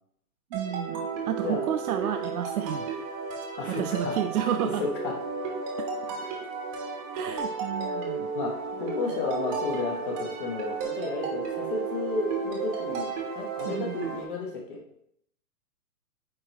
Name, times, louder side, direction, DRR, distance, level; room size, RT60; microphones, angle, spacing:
sound 1, 0.5-14.2, right 5 dB, 25° right, 1.0 m, -33 dB
voice 1, 0.5-3.1 3.7-4.9 7.1-8.3 9.0-9.3 13.7-14.2, right 10 dB, 75° right, 6 dB, 0.6 m, -31 dB
voice 2, 3.6-4.1 4.8-5.1 6.1-6.3 8.3-8.5 8.8-14.8, left 3 dB, 35° left, 0 dB, 1.0 m, -32 dB
8.7 x 3.1 x 4.0 m, 0.72 s
hypercardioid pair, 160°, 45 cm